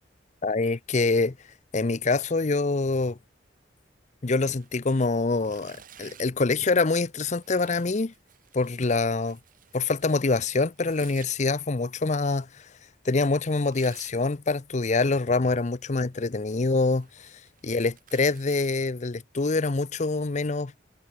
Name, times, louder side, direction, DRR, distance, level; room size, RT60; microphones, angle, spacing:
voice 1, 0.4-1.4 1.7-3.2 4.2-8.1 8.5-9.3 9.7-12.6 13.0-17.3 17.6-20.7, left 3 dB, 40° left, 0.6 m, -25 dB
Tearing, 4.4-6.4 7.2-11.3 13.4-14.2 15.5-16.0 16.4-18.8, right 9 dB, 45° right, 2.7 m, -54 dB
head